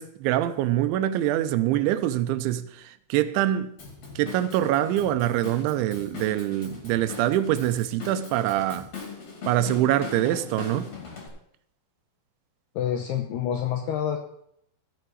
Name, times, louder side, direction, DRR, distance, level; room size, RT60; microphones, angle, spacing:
voice 1, 0.0-3.7 4.2-8.9 9.5-10.9, right 13 dB, 85° right, 2.8 m, -24 dB
Drum kit / Drum, 3.8-11.3, left 5 dB, 40° left, 3.1 m, -40 dB
voice 2, 12.8-14.2, left 9 dB, 90° left, 2.3 m, -27 dB
16.0 x 6.8 x 4.6 m
omnidirectional pair, 5.6 m